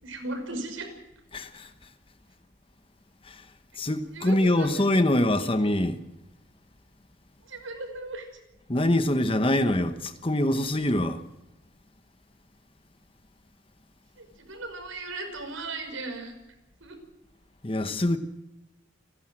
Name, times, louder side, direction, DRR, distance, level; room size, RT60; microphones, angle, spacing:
voice 1, 0.0-0.9 4.1-4.8 7.5-8.3 14.2-16.3 16.8-17.0, right 2 dB, 80° right, 5.7 m, -37 dB
voice 2, 1.3-1.9 3.2-3.5 3.8-6.0 8.7-11.2 17.6-18.2, left 1 dB, 25° left, 1.1 m, -24 dB
29.5 x 12.0 x 7.7 m
head